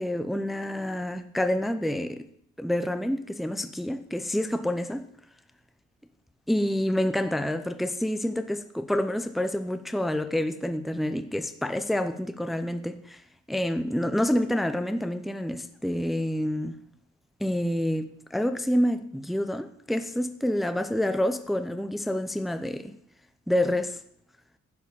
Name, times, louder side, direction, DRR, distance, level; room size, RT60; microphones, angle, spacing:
voice 1, 0.0-2.3 2.6-5.1 6.5-13.2 13.5-16.8 17.4-22.9 23.5-24.0, left 1 dB, ahead, 0.7 m, -28 dB
12.0 x 5.0 x 8.4 m
cardioid pair, 90°, 30 cm